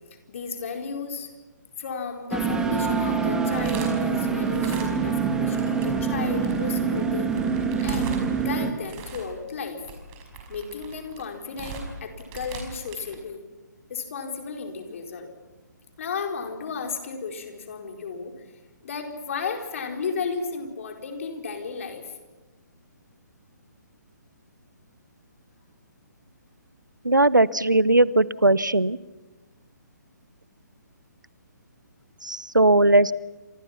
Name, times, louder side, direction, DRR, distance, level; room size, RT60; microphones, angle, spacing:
voice 1, 0.3-1.3 1.8-7.3 7.8-9.8 10.5-13.4 13.9-15.3 16.0-18.3 18.8-22.2, left 5 dB, 45° left, 4 dB, 4.4 m, -34 dB
sound 1, 2.3-8.7, right 5 dB, 5° right, 2.2 m, -25 dB
sound 2, 3.0-5.2 5.5-13.2, right 4 dB, 25° right, 5.3 m, -40 dB
voice 2, 27.0-29.0 32.2-33.1, right 2 dB, 90° right, 21 dB, 0.9 m, -19 dB
29.0 x 26.5 x 5.9 m, 1.1 s
figure-of-eight pair, 135°, 10 cm